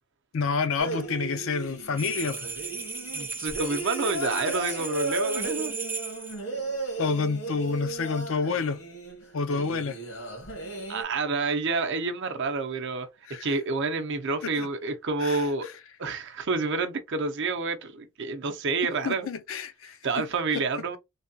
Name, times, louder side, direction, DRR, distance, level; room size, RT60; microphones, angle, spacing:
voice 1, 0.3-2.4 7.0-8.8 9.3-10.0 13.3-13.5 14.4-14.7 15.2-15.4 19.0-20.3 20.5-20.6, left 5 dB, 60° left, 0.4 m, -29 dB
sound 1, 0.8-11.0, right 2 dB, 80° left, 1.5 m, -35 dB
sound 2, 2.0-6.4, right 4 dB, 10° right, 0.3 m, -36 dB
voice 2, 3.1-5.7 10.9-13.1 13.4-15.7 16.0-19.3 20.0-21.0, right 3 dB, 55° right, 0.6 m, -28 dB
3.3 x 2.2 x 2.7 m
head